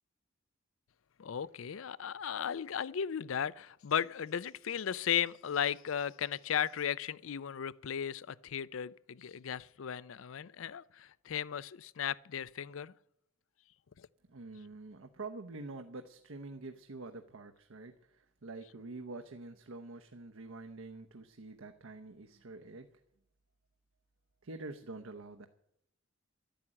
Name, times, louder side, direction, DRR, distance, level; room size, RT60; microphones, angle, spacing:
voice 1, 1.2-12.9 14.0-14.1, left 8 dB, 75° left, 0.5 m, -36 dB
voice 2, 14.3-22.9 24.4-25.5, right 3 dB, 85° right, 0.9 m, -46 dB
12.5 x 10.5 x 8.7 m
head